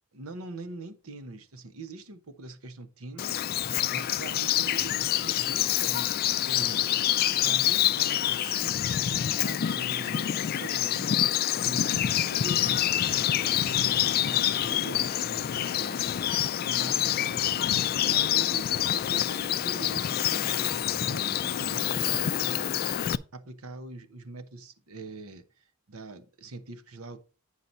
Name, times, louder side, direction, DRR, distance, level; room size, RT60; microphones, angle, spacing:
voice 1, 0.1-27.2, right 3 dB, 85° right, 0.9 m, -43 dB
Bird vocalization bird call bird song, 3.2-23.2, left 11 dB, 45° left, 0.3 m, -27 dB
9.4 x 5.7 x 4.0 m
head